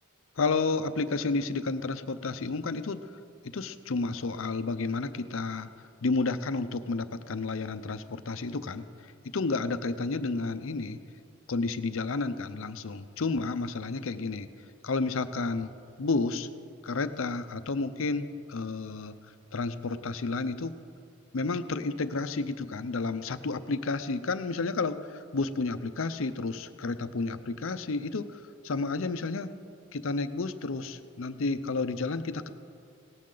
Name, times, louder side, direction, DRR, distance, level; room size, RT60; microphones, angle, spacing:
voice 1, 0.4-3.1 3.4-5.7 6.0-8.9 9.3-11.0 11.5-14.5 14.8-15.7 16.0-16.5 16.8-19.2 19.5-20.8 21.3-29.5 29.9-32.5, left 3 dB, 75° left, 11 dB, 0.6 m, -31 dB
17.5 x 14.0 x 3.9 m, 2.4 s
head